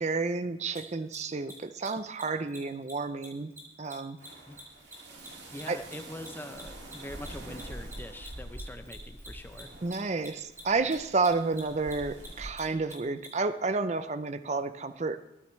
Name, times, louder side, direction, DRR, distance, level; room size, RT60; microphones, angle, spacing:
voice 1, 0.0-3.5 3.8-4.2 5.7-5.8 9.8-15.2, right 3 dB, 35° right, 12 dB, 0.5 m, -30 dB
Mechanisms, 0.7-0.8 1.1-1.2 1.4-1.5 1.8-1.9 2.1-2.2 2.5-2.6 2.8-2.9 3.2-5.9 6.2-13.3, right 1 dB, 15° right, 2.9 m, -47 dB
sound 1, 4.2-12.5, right 1 dB, 70° right, 2.3 m, -45 dB
voice 2, 5.5-9.7, left 1 dB, 10° left, 8 dB, 0.6 m, -44 dB
21.5 x 9.4 x 3.2 m, 0.87 s
head